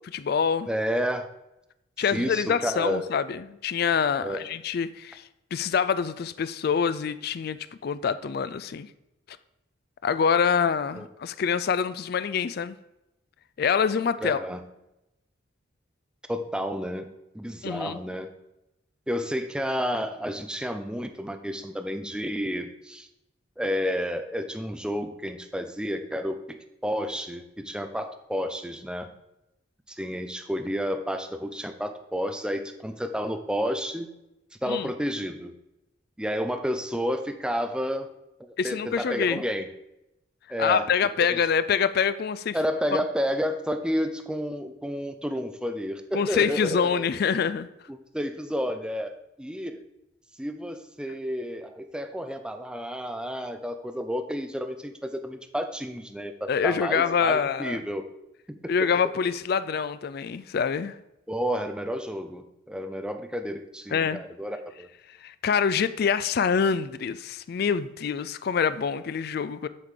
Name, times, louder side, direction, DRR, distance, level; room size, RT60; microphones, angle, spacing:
voice 1, 0.1-0.7 2.0-5.2 5.5-8.9 10.0-12.8 13.6-14.4 17.6-18.0 34.7-34.9 38.6-39.4 40.6-42.6 46.1-47.7 56.5-57.8 58.7-60.9 63.9-64.2 65.2-69.7, left 6 dB, 55° left, 14 dB, 0.4 m, -25 dB
voice 2, 0.7-1.3 2.1-3.1 4.2-4.4 10.9-11.1 14.2-14.6 16.3-17.1 17.3-18.3 19.1-23.1 23.6-26.6 26.8-29.1 29.9-34.1 34.6-35.5 36.2-38.1 38.4-39.7 40.5-40.9 41.2-41.4 42.5-47.1 47.9-49.8 50.4-58.0 58.5-58.9 61.3-64.9, equal, 5° right, 7 dB, 0.6 m, -31 dB
8.1 x 3.8 x 6.6 m, 0.89 s
head